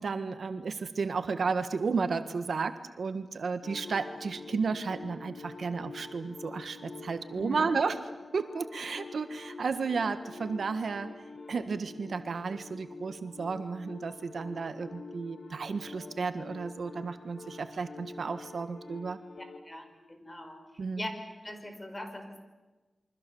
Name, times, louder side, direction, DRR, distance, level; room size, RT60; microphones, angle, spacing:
voice 1, 0.0-11.1 11.5-19.2 20.8-21.0, right 4 dB, 85° right, 9 dB, 1.5 m, -33 dB
sound 1, 3.6-19.6, left 3 dB, 75° left, 2.6 m, -46 dB
voice 2, 7.3-7.7 19.6-20.6 20.9-21.1 21.4-22.4, left 1 dB, 20° left, 6 dB, 5.1 m, -41 dB
28.5 x 24.0 x 7.1 m, 1.2 s
wide cardioid pair, 75°, 0 cm